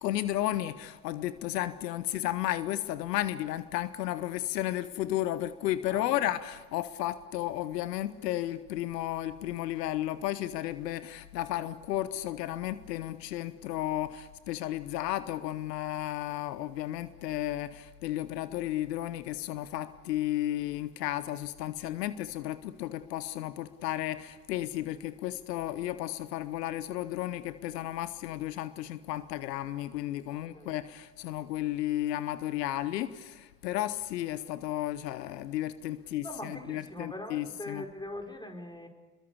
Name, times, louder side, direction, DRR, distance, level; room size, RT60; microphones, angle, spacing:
voice 1, 0.0-37.8, left 14 dB, 80° left, 0.9 m, -33 dB
voice 2, 5.9-6.3 30.3-30.7 36.2-38.9, left 1 dB, 10° left, 5.0 m, -42 dB
27.0 x 22.0 x 8.5 m
figure-of-eight pair, 50°, 48 cm